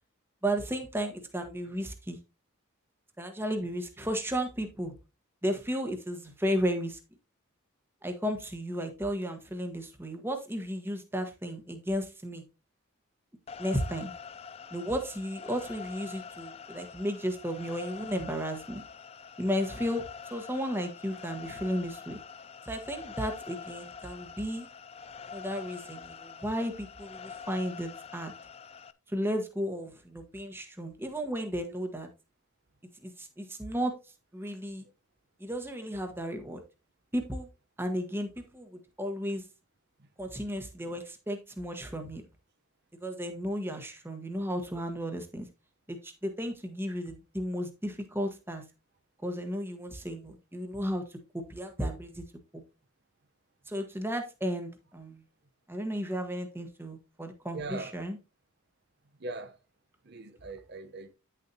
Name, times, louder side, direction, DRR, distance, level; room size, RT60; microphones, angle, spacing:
voice 1, 0.4-2.2 3.2-4.9 5.4-7.0 8.0-12.4 13.6-14.1 14.7-18.8 19.4-22.2 22.6-24.7 25.3-28.3 29.1-32.1 33.0-34.0 34.3-34.8 35.4-36.6 37.1-37.5 37.8-39.4 40.2-42.2 43.0-45.5 45.9-48.6 49.2-52.2 52.5-52.6 53.7-55.2 55.7-58.2, equal, 10° right, 1.2 m, -34 dB
sound 1, 13.5-28.9, left 6 dB, 30° left, 0.4 m, -45 dB
voice 2, 57.5-58.0 59.2-59.6 60.0-61.1, right 2 dB, 50° right, 0.8 m, -40 dB
10.0 x 6.8 x 2.8 m
head